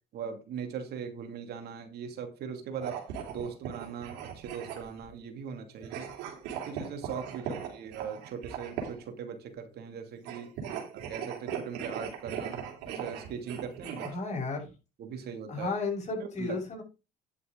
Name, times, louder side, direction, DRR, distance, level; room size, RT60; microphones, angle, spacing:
voice 1, 0.1-3.0 3.3-6.1 6.6-10.5 11.1-14.0 15.0-15.7 16.4-16.6, right 7 dB, 65° right, 5 dB, 2.6 m, -40 dB
sound 1, 2.7-5.1 5.8-9.1 10.2-14.1, right 8 dB, 80° right, 3.5 m, -39 dB
voice 2, 14.0-14.7 15.5-16.8, left 3 dB, 40° left, 0 dB, 7.1 m, -33 dB
10.0 x 8.0 x 3.9 m, 0.29 s
supercardioid pair, 80°, 18 cm